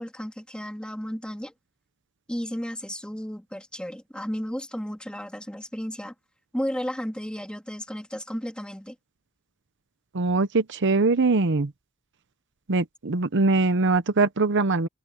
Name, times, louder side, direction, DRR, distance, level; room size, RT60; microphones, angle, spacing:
voice 1, 0.0-1.5 2.3-6.1 6.5-9.0, equal, 5° left, 2.1 m, -33 dB
voice 2, 10.1-11.7 12.7-14.9, right 3 dB, 55° right, 0.8 m, -22 dB
head